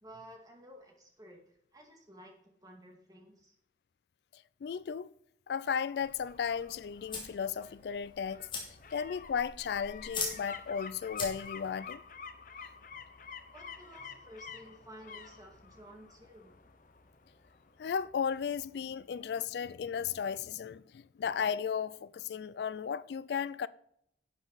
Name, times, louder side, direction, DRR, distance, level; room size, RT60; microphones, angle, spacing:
voice 1, 0.0-3.5 13.5-16.5, equal, 20° right, 2.0 m, -53 dB
voice 2, 4.3-5.1 5.5-12.0 17.8-23.7, left 7 dB, 70° left, 0.3 m, -35 dB
sound 1, 6.0-18.8 19.1-19.2, left 6 dB, 50° left, 0.7 m, -50 dB
sound 2, 6.0-11.8, left 4 dB, 30° left, 2.5 m, -43 dB
11.0 x 7.1 x 4.0 m
head